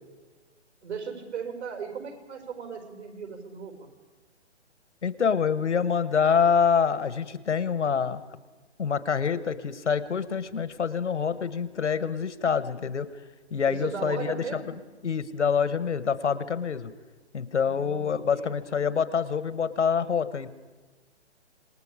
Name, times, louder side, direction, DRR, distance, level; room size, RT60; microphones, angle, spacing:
voice 1, 0.8-3.9 13.6-14.7 17.6-18.5, right 6 dB, 70° right, 4 dB, 5.5 m, -37 dB
voice 2, 5.0-8.2 8.8-13.1 13.5-14.6 15.0-16.9 17.3-20.5, left 6 dB, 80° left, 14 dB, 1.5 m, -26 dB
27.5 x 19.5 x 5.0 m, 1.3 s
hypercardioid pair, 145°, 35 cm